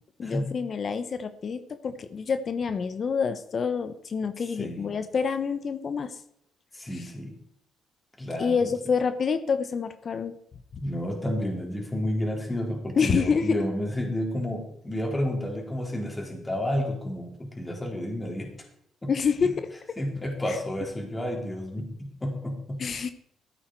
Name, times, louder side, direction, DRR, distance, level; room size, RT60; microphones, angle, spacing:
voice 1, 0.2-6.2 6.9-7.0 8.4-10.3 10.7-10.8 13.0-13.6 19.1-19.7 20.5-20.6 22.8-23.1, left 6 dB, 45° left, 11 dB, 1.0 m, -27 dB
voice 2, 4.6-4.9 6.7-7.3 8.2-8.7 10.8-18.5 19.0-19.1 20.0-22.8, left 1 dB, 15° left, 1 dB, 3.7 m, -31 dB
14.0 x 8.7 x 4.6 m, 0.72 s
cardioid pair, 90°, 0 cm